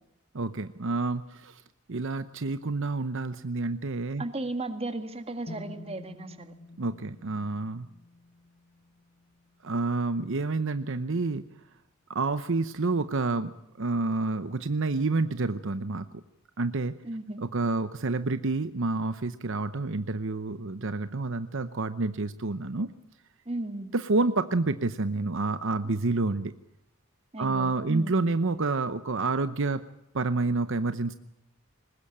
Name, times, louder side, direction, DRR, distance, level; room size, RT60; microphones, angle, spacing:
voice 1, 0.3-1.6 1.9-4.2 6.8-7.9 9.6-11.4 12.1-13.5 13.8-16.1 16.6-17.0 17.4-22.9 23.9-26.5 27.4-29.8 30.1-31.1, right 3 dB, 65° right, 11 dB, 0.8 m, -28 dB
voice 2, 4.2-6.5 17.0-17.4 23.5-23.9 25.8-25.9 27.3-28.1, right 2 dB, 30° right, 8 dB, 1.8 m, -35 dB
sound 1, 5.5-9.4, left 1 dB, 40° left, 1.5 m, -47 dB
21.0 x 19.5 x 8.7 m, 0.86 s
head